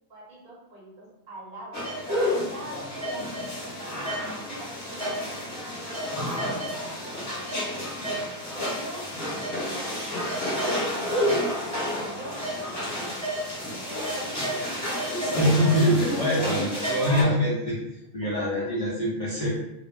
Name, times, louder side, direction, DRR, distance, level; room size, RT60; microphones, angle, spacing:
voice 1, 0.1-1.9 2.2-3.2 3.6-5.6 6.3-7.7 8.5-11.6 12.1-12.9 13.8-15.7 16.4-16.7 17.1-17.3 18.2-18.9, right 1 dB, 45° right, -5 dB, 0.8 m, -42 dB
sound 1, 1.7-17.2, equal, 15° left, 0.8 m, -30 dB
voice 2, 15.3-17.8 18.1-19.5, equal, 70° left, -6 dB, 0.3 m, -24 dB
2.1 x 2.0 x 3.1 m, 0.88 s
omnidirectional pair, 1.2 m